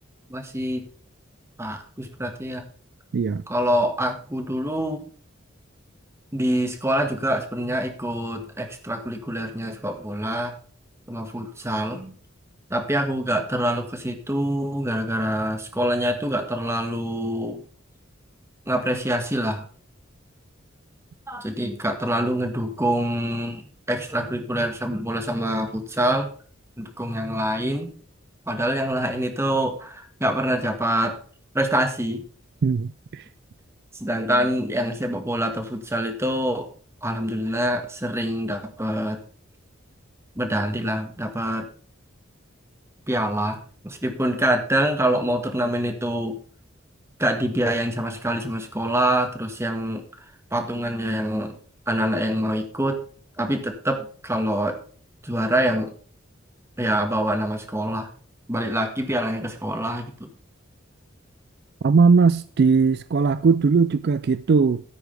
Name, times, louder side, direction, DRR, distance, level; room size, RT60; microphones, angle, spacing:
voice 1, 0.3-0.8 1.6-2.6 3.5-5.0 6.3-10.5 11.1-12.1 12.7-17.6 18.7-19.7 21.3-26.3 26.8-27.9 28.5-31.2 31.5-32.2 33.9-36.7 37.0-39.2 40.3-41.7 43.1-46.4 47.2-50.0 50.5-51.6 51.9-53.0 53.4-54.8 55.2-55.9 56.8-58.1 58.5-60.3, right 1 dB, 15° right, 1.6 m, -25 dB
voice 2, 3.1-3.4 32.6-33.2 61.8-64.8, right 5 dB, 55° right, 0.4 m, -19 dB
13.0 x 9.6 x 3.4 m
head